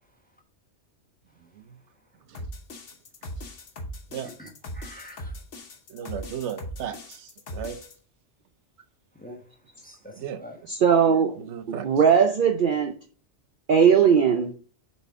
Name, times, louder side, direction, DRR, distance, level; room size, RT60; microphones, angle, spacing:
sound 1, 2.3-7.9, equal, 85° left, 1.4 m, -39 dB
voice 1, 4.2-5.3 9.1-9.4 9.8-10.6, left 1 dB, 10° left, 3 dB, 1.0 m, -45 dB
voice 2, 5.9-7.8 10.2-10.4 11.4-11.9, right 8 dB, 75° right, 10 dB, 0.9 m, -35 dB
voice 3, 10.7-11.3 11.7-12.9 13.7-14.5, right 7 dB, 55° right, 4 dB, 0.7 m, -19 dB
7.0 x 4.2 x 3.6 m, 0.42 s
omnidirectional pair, 1.2 m